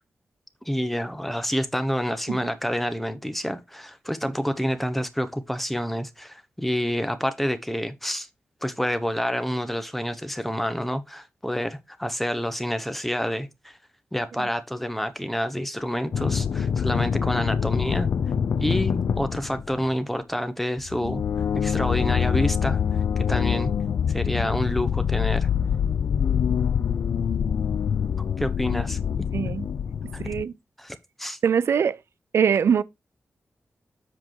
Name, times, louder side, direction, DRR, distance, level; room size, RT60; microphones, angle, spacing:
voice 1, 0.6-8.3 8.6-13.8 14.1-18.1 18.6-21.2 21.5-22.8 23.2-23.7 24.1-25.5 28.4-29.0 30.1-30.2 30.8-31.4, equal, 5° left, 0.9 m, -28 dB
sound 1, 16.1-19.8 20.8-30.4, left 7 dB, 75° left, 0.5 m, -25 dB
voice 2, 29.3-29.7 30.2-30.5 31.4-32.0 32.3-32.8, right 7 dB, 80° right, 0.4 m, -22 dB
7.7 x 4.8 x 4.6 m
wide cardioid pair, 120°, 4 cm